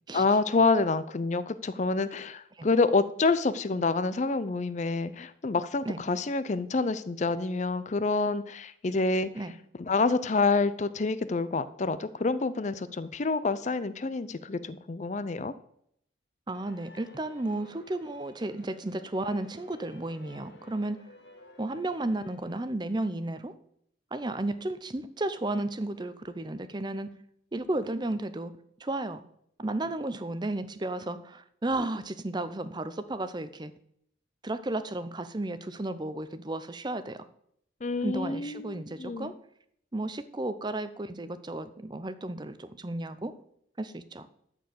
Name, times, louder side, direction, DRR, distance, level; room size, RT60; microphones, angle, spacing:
voice 1, 0.1-9.3 9.8-15.5 37.8-39.3, left 3 dB, 40° left, 15 dB, 0.5 m, -27 dB
sound 1, 16.5-22.7, left 2 dB, 65° left, 1.7 m, -54 dB
voice 2, 16.5-21.0 21.6-23.5 24.1-27.1 27.5-28.5 28.8-29.2 29.6-33.7 34.4-37.3 38.0-39.3 39.9-43.3 43.8-44.3, right 2 dB, 25° right, 12 dB, 0.6 m, -33 dB
13.5 x 4.6 x 7.7 m, 0.71 s
head